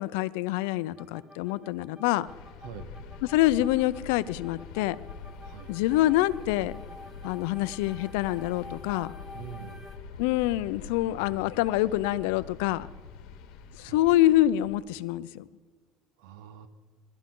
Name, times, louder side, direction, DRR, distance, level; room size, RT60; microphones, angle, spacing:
voice 1, 0.0-2.3 3.3-5.0 5.7-6.8 7.2-9.1 10.2-12.9 13.8-15.5, left 15 dB, 90° left, 16 dB, 0.4 m, -26 dB
sound 1, 1.0-10.0, left 1 dB, 10° right, 1.5 m, -49 dB
sound 2, 2.2-14.8, left 5 dB, 60° left, 1.1 m, -45 dB
voice 2, 9.3-9.9 13.8-14.1 16.2-16.7, right 9 dB, 75° right, 11 dB, 0.9 m, -44 dB
18.0 x 12.5 x 3.8 m, 1.4 s
cardioid pair, 165°, 0 cm